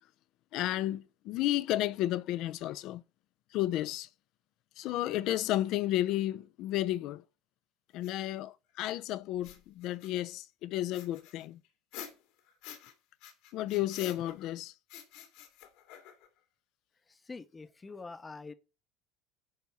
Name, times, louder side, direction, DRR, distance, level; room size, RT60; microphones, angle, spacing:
voice 1, 0.5-3.0 3.5-4.1 4.8-7.2 7.9-11.6 13.5-14.7, left 14 dB, 50° left, 0.5 m, -32 dB
sound 1, 8.0-8.1 9.3-10.3 10.9-12.9 13.2-14.5 14.9-16.4, left 10 dB, 70° left, 2.1 m, -49 dB
voice 2, 17.1-18.5, left 4 dB, 15° left, 0.7 m, -45 dB
10.5 x 4.1 x 6.9 m
cardioid pair, 160°, 0 cm